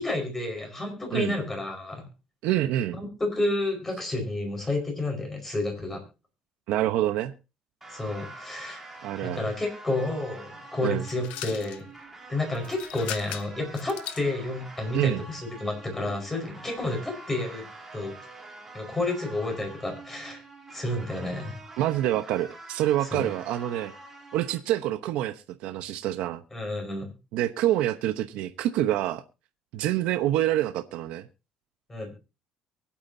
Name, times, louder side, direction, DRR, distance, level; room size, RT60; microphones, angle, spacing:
voice 1, 0.0-2.1 2.9-6.0 7.9-8.8 9.2-11.8 12.3-17.6 17.9-18.2 18.7-20.4 20.7-21.6 23.1-23.2 26.5-27.1 31.9-32.1, left 2 dB, 15° left, 4 dB, 5.0 m, -30 dB
voice 2, 2.4-3.0 6.7-7.3 9.0-9.4 10.8-11.0 14.9-15.2 21.8-23.9 24.3-26.4 27.3-29.2 29.7-31.3, right 13 dB, 75° right, 8 dB, 1.0 m, -26 dB
sound 1, 7.8-24.6, right 2 dB, 10° right, 3.0 m, -46 dB
sound 2, 11.0-11.8 12.5-14.3, left 12 dB, 80° left, 1.1 m, -38 dB
23.5 x 8.7 x 2.7 m, 0.30 s
cardioid pair, 150°, 2 cm